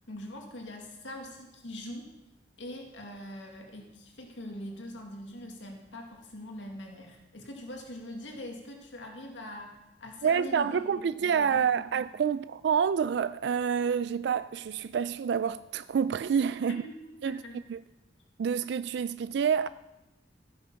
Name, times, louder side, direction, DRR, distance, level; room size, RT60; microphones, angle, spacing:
voice 1, 0.1-2.1 2.6-12.0 16.7-17.6, left 1 dB, 90° left, 2.0 m, -43 dB
voice 2, 10.2-16.8 17.2-17.4 17.7-17.8 18.4-19.7, right 7 dB, 65° right, 0.3 m, -28 dB
15.5 x 8.7 x 5.8 m
head